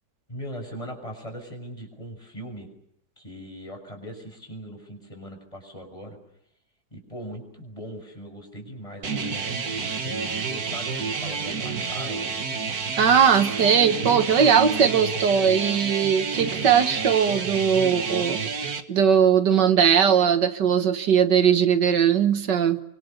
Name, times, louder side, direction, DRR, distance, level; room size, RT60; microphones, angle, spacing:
voice 1, 0.3-2.7 3.2-6.2 6.9-12.4, equal, 20° left, 4 dB, 6.5 m, -39 dB
sound 1, 9.0-18.8, right 5 dB, 60° right, 2.1 m, -29 dB
voice 2, 13.0-18.4 18.9-22.8, right 7 dB, 75° right, 9 dB, 2.0 m, -19 dB
29.0 x 25.0 x 6.7 m, 0.75 s
omnidirectional pair, 1.9 m